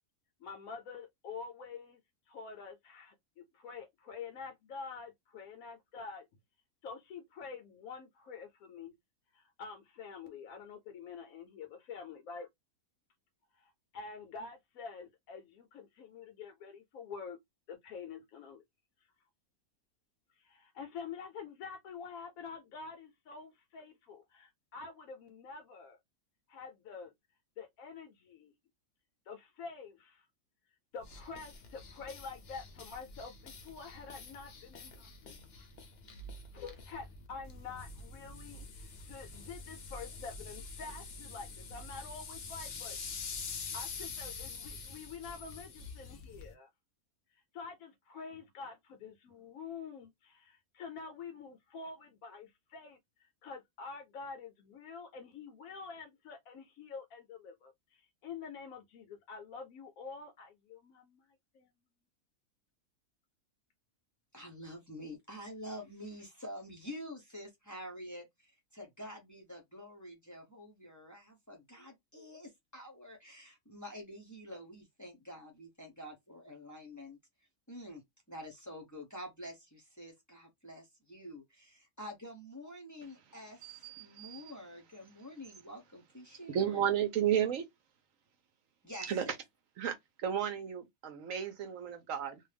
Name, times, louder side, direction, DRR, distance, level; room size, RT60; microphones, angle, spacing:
voice 1, 0.4-2.0 2.3-6.3 6.8-8.9 9.3-12.5 13.5-17.4 17.7-18.6 20.3-26.0 26.5-27.1 27.6-28.5 29.3-30.3 30.9-35.7 36.5-43.0 43.7-46.7 47.3-61.3 61.5-61.7, left 5 dB, 75° left, 1.0 m, -47 dB
sound 1, 31.0-46.5, left 4 dB, 55° left, 0.8 m, -46 dB
voice 2, 64.3-77.2 77.7-78.0 78.3-86.8 88.8-89.4, equal, 20° left, 0.6 m, -48 dB
voice 3, 83.6-84.4 86.5-87.6 89.0-89.2 89.8-90.0 90.2-92.4, right 9 dB, 65° right, 0.9 m, -33 dB
2.6 x 2.3 x 3.3 m
omnidirectional pair, 1.6 m